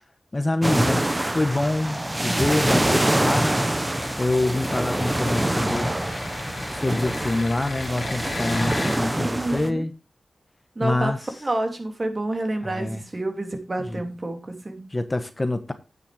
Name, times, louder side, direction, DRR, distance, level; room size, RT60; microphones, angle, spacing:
voice 1, 0.3-3.5 4.2-5.9 6.7-9.9 10.8-11.2 12.6-13.0 13.8-14.0 14.9-15.7, left 2 dB, 30° left, 1.2 m, -26 dB
sound 1, 0.6-9.7, right 1 dB, 20° right, 1.0 m, -25 dB
sound 2, 3.4-9.0, left 3 dB, 75° left, 2.6 m, -37 dB
voice 2, 9.2-9.9 10.8-11.1 11.4-14.9, right 2 dB, 45° right, 2.8 m, -28 dB
9.3 x 6.7 x 4.9 m
cardioid pair, 45°, 0 cm